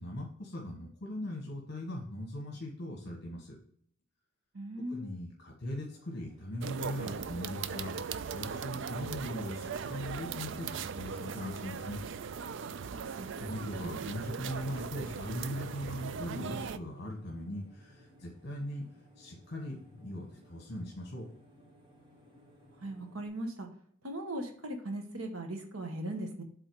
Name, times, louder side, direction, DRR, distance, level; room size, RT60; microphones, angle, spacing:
voice 1, 0.0-3.5 4.9-12.0 13.4-18.9 19.2-21.3, left 1 dB, 55° left, 0 dB, 1.4 m, -40 dB
voice 2, 4.5-5.2 13.2-13.3 22.8-23.7 24.0-26.4, right 1 dB, 85° right, 4 dB, 1.3 m, -38 dB
sound 1, 5.9-23.3, equal, 25° right, 1.6 m, -61 dB
sound 2, 6.6-16.8, right 6 dB, 60° right, 0.4 m, -39 dB
7.9 x 4.0 x 4.8 m, 0.63 s
head